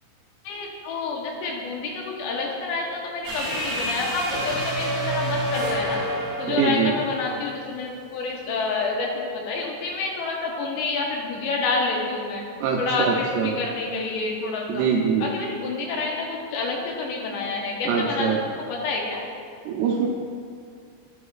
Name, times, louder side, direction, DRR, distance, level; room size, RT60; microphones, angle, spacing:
voice 1, 0.5-6.0 6.4-12.4 12.8-14.8 15.3-18.3 18.7-19.2, left 3 dB, 80° left, -1 dB, 3.1 m, -28 dB
sound 1, 3.2-7.6, equal, 55° right, 0.8 m, -28 dB
voice 2, 6.5-7.0 12.6-13.6 14.7-15.3 17.8-18.4 19.7-20.1, right 6 dB, 80° right, 0 dB, 2.4 m, -23 dB
11.0 x 10.5 x 2.4 m, 2.2 s
omnidirectional pair, 5.2 m